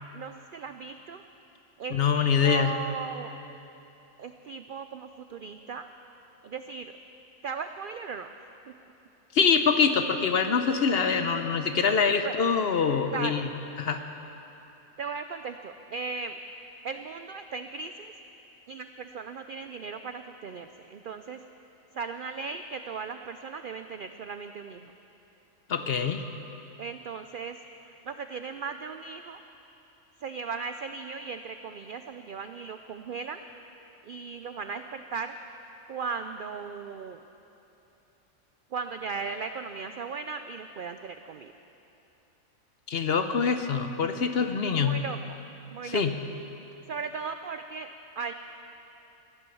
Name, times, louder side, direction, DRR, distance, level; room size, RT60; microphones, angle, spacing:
voice 1, 0.1-1.2 1.8-3.4 4.2-5.9 6.4-6.9 7.4-8.3 8.7-8.8 12.2-12.3 13.1-13.5 15.0-16.4 16.8-18.1 18.7-21.4 21.9-24.9 26.8-27.6 28.0-29.4 30.2-33.4 34.0-35.3 35.9-37.2 38.7-41.5 44.7-45.4 45.7-46.0 46.9-48.3, right 5 dB, 70° right, 8 dB, 0.5 m, -37 dB
voice 2, 1.9-2.7 9.3-13.5 13.8-14.0 25.7-26.2 42.9-45.0 45.9-46.2, left 6 dB, 55° left, 8 dB, 0.8 m, -24 dB
15.5 x 11.0 x 7.0 m, 2.9 s
omnidirectional pair, 1.4 m